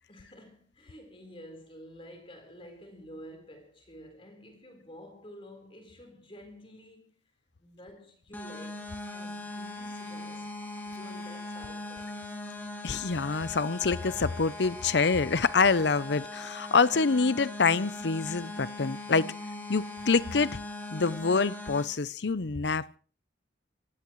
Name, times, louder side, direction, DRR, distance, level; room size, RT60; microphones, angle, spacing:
voice 1, 0.1-7.2 7.6-10.5 10.8-12.3, equal, 30° left, 4.3 m, -50 dB
sound 1, 8.3-21.8, left 2 dB, 10° left, 2.2 m, -40 dB
voice 2, 12.8-19.3 19.7-20.6 20.9-23.0, left 4 dB, 65° left, 0.7 m, -26 dB
24.5 x 17.0 x 3.2 m
head